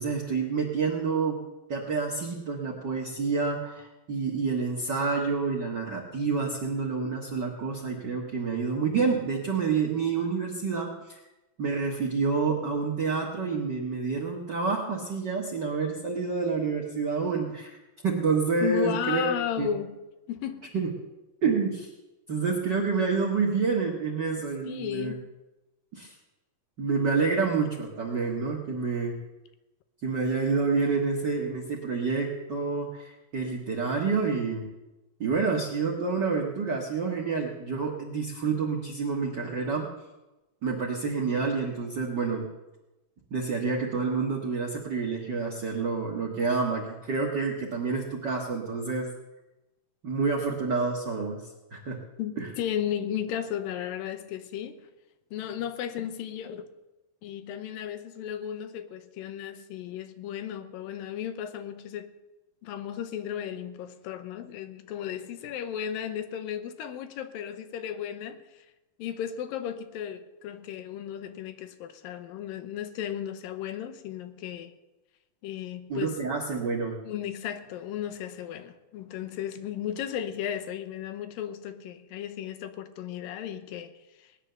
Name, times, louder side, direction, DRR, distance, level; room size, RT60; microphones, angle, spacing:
voice 1, 0.0-1.4 1.7-11.2 11.6-17.8 18.0-19.3 19.6-19.7 20.7-20.9 21.4-21.9 22.3-25.1 25.9-26.1 26.8-29.1 30.0-34.7 35.2-39.9 40.6-42.5 43.3-49.1 50.0-51.5 51.7-52.0 52.4-52.5 75.9-77.0, right 4 dB, 45° right, 1.6 m, -28 dB
voice 2, 18.6-20.0 20.3-20.7 24.7-25.3 52.2-54.8 55.3-56.7 57.2-62.1 62.6-68.7 69.0-74.7 75.4-76.2 77.0-83.9 84.2-84.3, left 10 dB, 90° left, 2.7 m, -35 dB
19.0 x 10.0 x 6.8 m
omnidirectional pair, 4.0 m